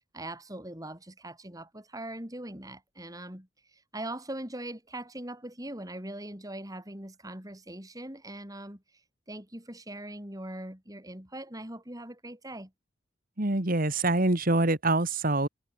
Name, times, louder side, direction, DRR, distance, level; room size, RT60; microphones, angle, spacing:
voice 1, 0.1-8.8 9.3-12.7, right 1 dB, 20° right, 5.0 m, -41 dB
voice 2, 13.4-15.5, right 2 dB, 45° right, 2.1 m, -25 dB
head